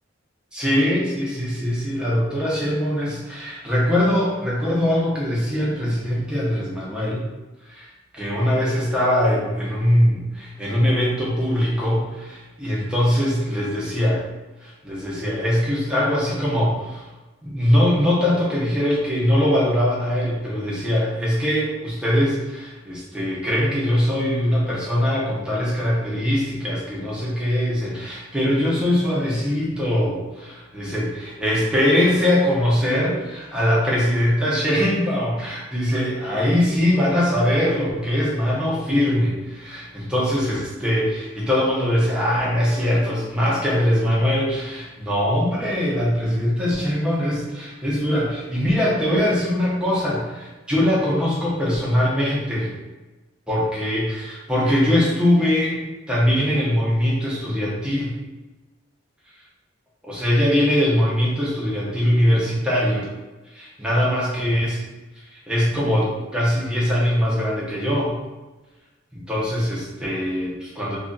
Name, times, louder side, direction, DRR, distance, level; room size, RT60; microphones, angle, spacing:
voice 1, 0.5-7.3 7.7-7.9 8.1-14.2 14.6-17.1 17.4-31.1 31.4-52.7 53.5-55.8 56.1-58.1 60.0-63.1 63.5-64.8 65.3-68.2 69.1-71.0, equal, 5° right, -6 dB, 0.8 m, -22 dB
3.1 x 2.4 x 3.9 m, 1.1 s
head